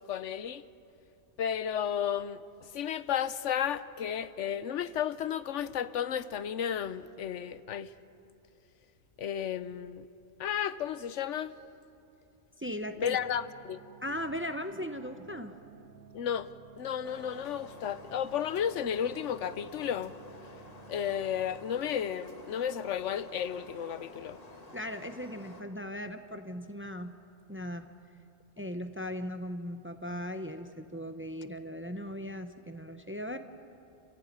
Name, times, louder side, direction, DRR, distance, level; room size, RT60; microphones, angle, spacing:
voice 1, 0.1-0.6 1.4-2.4 2.7-7.9 9.2-10.0 10.4-11.5 13.0-13.8 16.1-16.5 16.8-20.1 20.9-24.4, left 9 dB, 75° left, 1.0 m, -33 dB
voice 2, 12.6-13.2 14.0-15.5 24.7-27.2 27.5-27.9 28.6-33.4, equal, 10° right, 0.7 m, -38 dB
sound 1, 13.0-22.3, right 8 dB, 85° right, 1.4 m, -55 dB
sound 2, 17.0-25.6, left 2 dB, 30° left, 1.6 m, -51 dB
29.0 x 15.0 x 9.6 m
omnidirectional pair, 1.3 m